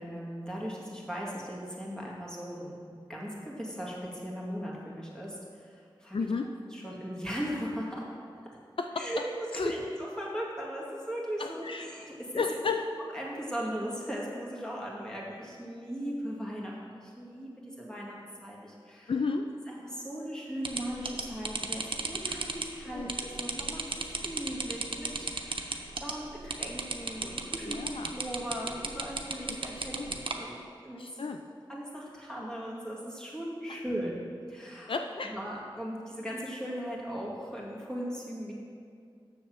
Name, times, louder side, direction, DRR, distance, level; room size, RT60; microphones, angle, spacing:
voice 1, 0.0-6.3 6.7-8.1 9.0-12.4 13.1-19.1 19.7-31.2 31.7-34.2 34.5-34.9 35.2-38.5, equal, 5° left, -5 dB, 2.2 m, -38 dB
voice 2, 6.1-6.5 8.8-9.1 9.5-9.7 11.4-11.8 12.3-12.8 19.1-19.5 22.9-23.1 27.6-28.1 29.7-30.2 31.0-31.4 33.7-33.8 34.9-35.3, left 4 dB, 65° left, 5 dB, 0.4 m, -32 dB
sound 1, 20.6-30.4, right 3 dB, 65° right, 0.8 m, -34 dB
7.1 x 6.8 x 6.1 m, 2.3 s
wide cardioid pair, 50°, 10 cm